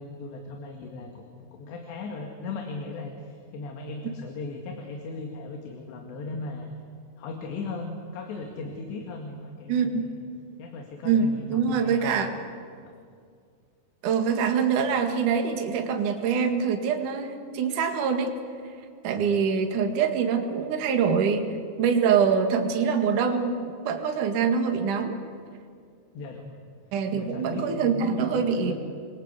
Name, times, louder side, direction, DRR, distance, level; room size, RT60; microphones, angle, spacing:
voice 1, 0.0-6.7 7.2-10.1 10.6-12.2 12.8-12.9 26.1-26.6 27.1-28.7, left 3 dB, 85° left, 3 dB, 4.3 m, -37 dB
voice 2, 9.7-10.1 11.0-12.3 14.0-18.3 19.0-25.2 26.9-28.7, right 6 dB, 55° right, 4 dB, 3.2 m, -24 dB
29.0 x 23.0 x 8.3 m, 2.2 s
omnidirectional pair, 4.9 m